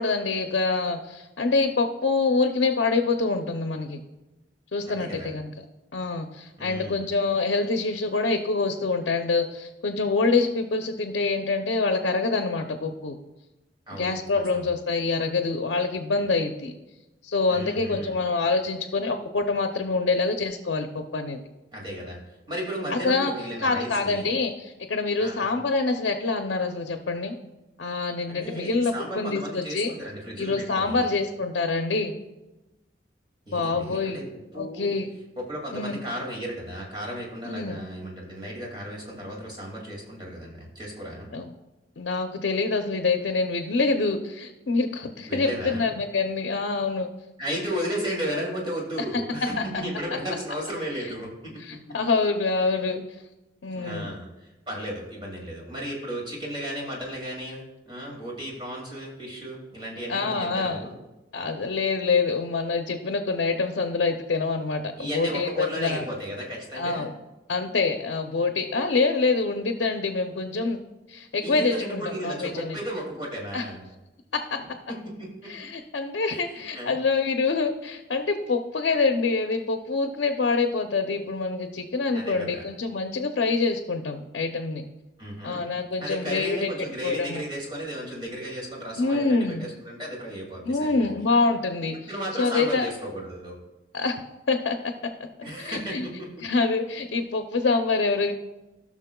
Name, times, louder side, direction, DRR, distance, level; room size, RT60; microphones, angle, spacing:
voice 1, 0.0-4.0 4.7-5.5 5.9-13.2 13.9-16.7 17.2-21.4 22.9-23.3 23.6-27.4 27.8-29.9 30.4-32.2 33.5-34.2 34.6-35.1 35.7-36.0 37.4-37.8 41.3-41.5 42.0-47.1 49.6-49.7 51.0-51.1 51.6-53.0 53.6-54.1 60.1-60.8 61.3-66.0 66.8-67.1 67.5-70.8 71.1-72.8 73.5-73.6 74.5-74.7 75.4-84.8 85.4-86.7 87.0-87.4 89.0-89.7 90.6-92.1 92.4-92.9 93.9-94.1 94.5-94.9 95.6-96.1 96.4-98.3, left 3 dB, 75° left, 5 dB, 0.6 m, -26 dB
voice 2, 4.8-5.3 6.6-7.1 13.9-14.7 17.5-18.2 21.7-22.2 22.5-24.3 25.2-25.4 28.3-31.1 33.5-34.2 34.5-34.9 35.4-41.3 45.3-45.9 47.4-52.0 53.7-61.0 65.0-67.1 71.4-73.8 75.0-75.5 76.3-77.0 82.1-82.7 85.2-85.7 86.0-91.1 92.1-93.5 95.4-96.3, equal, 25° right, -3 dB, 2.3 m, -34 dB
15.5 x 6.1 x 2.3 m, 1.0 s
head